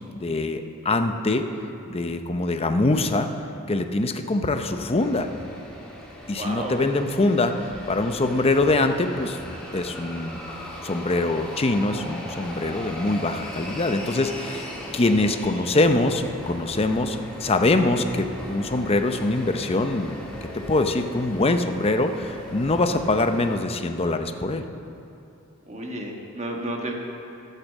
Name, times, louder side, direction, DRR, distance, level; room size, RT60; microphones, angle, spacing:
voice 1, 0.1-1.5 1.9-3.3 3.7-5.3 6.3-7.6 7.9-9.4 9.7-10.4 10.8-24.7, left 2 dB, 25° left, 7 dB, 0.6 m, -23 dB
sound 1, 5.0-23.6, equal, 5° left, 1.9 m, -38 dB
voice 2, 6.3-6.8 25.7-26.9, right 1 dB, 30° right, 0 dB, 1.4 m, -32 dB
12.0 x 8.3 x 7.3 m, 2.7 s
head